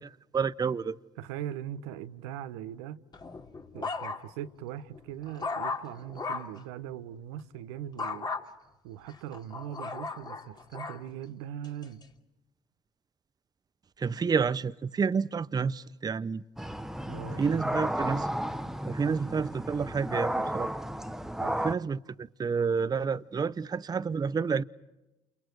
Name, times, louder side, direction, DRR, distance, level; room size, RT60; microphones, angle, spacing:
voice 1, 0.3-0.9 14.0-16.4 17.4-18.3 18.8-20.7 21.6-24.6, right 5 dB, 25° right, 0.8 m, -29 dB
voice 2, 1.2-3.0 3.7-8.3 8.8-12.0 17.0-17.4 19.0-19.1 21.4-21.6, right 11 dB, 80° right, 1.1 m, -40 dB
sound 1, 3.1-4.5 4.9-6.6 8.0-8.4 9.1-11.0 11.6-12.0, left 4 dB, 30° left, 2.8 m, -36 dB
sound 2, 16.6-21.7, equal, 5° right, 1.2 m, -33 dB
30.0 x 29.0 x 4.7 m
hypercardioid pair, 70°, 14 cm